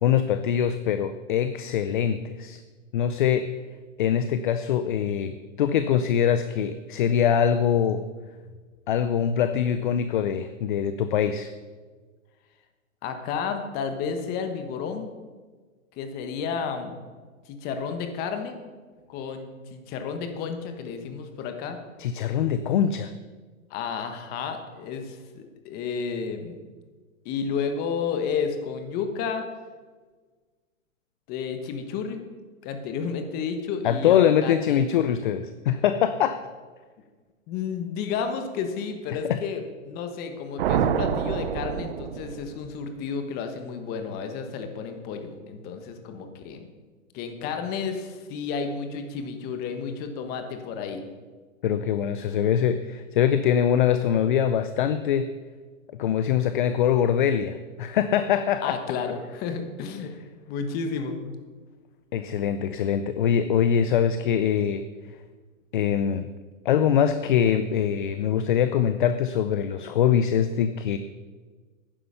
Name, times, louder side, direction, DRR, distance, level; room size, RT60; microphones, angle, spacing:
voice 1, 0.0-2.6 2.9-3.5 4.0-8.0 8.9-11.5 22.0-23.1 33.8-36.4 39.3-39.4 51.6-55.3 56.0-58.8 62.1-64.8 65.7-66.3 66.6-71.0, left 9 dB, 40° left, 11 dB, 0.5 m, -23 dB
voice 2, 13.0-15.1 16.0-17.0 17.5-18.6 19.1-21.8 23.7-26.6 27.2-29.4 31.3-32.2 32.6-34.8 37.5-46.7 47.1-51.0 58.6-60.1 60.5-61.2, left 6 dB, 25° left, 7 dB, 1.2 m, -31 dB
sound 1, 40.6-42.8, right 8 dB, 45° right, 0.8 m, -27 dB
11.0 x 10.0 x 5.6 m, 1.4 s
hypercardioid pair, 150°, 40 cm